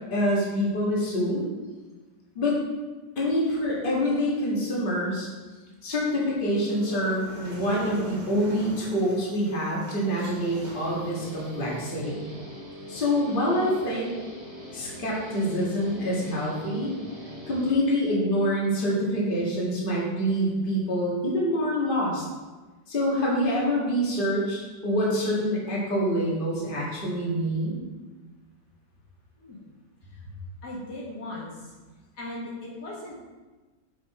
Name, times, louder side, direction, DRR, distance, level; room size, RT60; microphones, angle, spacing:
voice 1, 0.1-1.5 2.4-2.6 3.2-5.3 5.8-12.2 12.9-14.1 14.7-16.9 17.5-22.2 22.9-27.8, equal, 30° left, -5 dB, 1.8 m, -26 dB
sound 1, 6.7-12.0, right 2 dB, 55° right, 2.0 m, -43 dB
Guitar, 10.1-17.8, equal, 20° right, 1.5 m, -42 dB
voice 2, 30.6-31.7 32.2-33.2, left 1 dB, 60° left, -5 dB, 2.0 m, -38 dB
6.7 x 5.3 x 4.7 m, 1.3 s
omnidirectional pair, 2.1 m